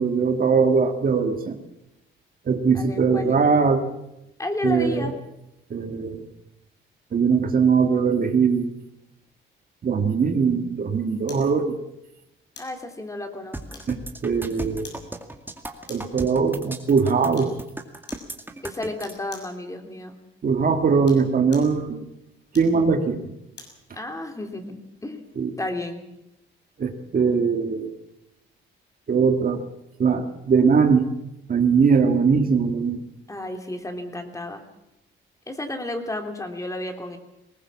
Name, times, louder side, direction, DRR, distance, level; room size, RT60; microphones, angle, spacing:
voice 1, 0.0-1.6 2.5-3.8 4.6-5.1 5.7-6.2 7.1-8.7 9.8-11.7 13.9-14.9 15.9-17.5 20.4-22.0 22.5-23.2 25.4-25.5 26.8-27.9 29.1-29.6 30.0-31.1 31.5-33.0, right 5 dB, 45° right, 6 dB, 2.1 m, -21 dB
voice 2, 2.7-3.4 4.4-5.2 12.6-13.8 18.6-20.2 23.9-25.2 25.6-26.0 33.3-34.6 35.5-37.2, left 2 dB, 15° left, 5 dB, 3.1 m, -32 dB
sound 1, 11.3-11.5 12.5-12.8 13.7-14.2 14.8-15.1 15.9-16.2 17.3-17.6 18.1-18.3 19.0-19.6 20.9-21.8 22.5-23.8 24.3-24.4, left 4 dB, 60° left, 6.4 m, -45 dB
sound 2, 13.5-19.1, right 2 dB, 10° right, 2.2 m, -36 dB
20.5 x 18.5 x 7.3 m, 0.85 s
cardioid pair, 90°, 20 cm